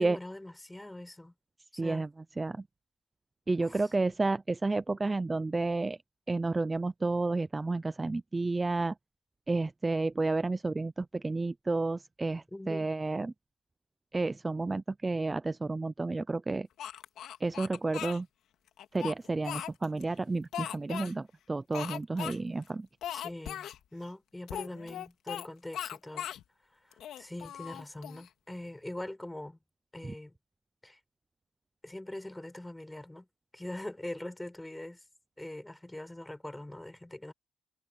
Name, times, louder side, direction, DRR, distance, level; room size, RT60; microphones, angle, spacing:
voice 1, 0.0-1.3 1.7-2.1 3.6-3.9 12.5-12.9 23.1-26.3 26.9-29.6 29.9-30.4 30.8-31.0 31.8-33.3 33.5-35.0 35.4-37.3, left 1 dB, 10° left, 6.0 m, -43 dB
voice 2, 1.8-2.1 2.4-2.6 3.5-6.0 6.3-8.9 9.5-13.3 14.1-16.7 17.4-18.3 18.9-22.9, right 3 dB, 20° right, 0.5 m, -31 dB
Speech, 16.8-18.2 18.8-20.0 20.5-21.1 21.7-22.4 22.6-22.7 23.0-23.8 24.5-25.5 25.7-26.4 26.9-28.3, left 11 dB, 75° left, 2.2 m, -39 dB
cardioid pair, 90°, 0 cm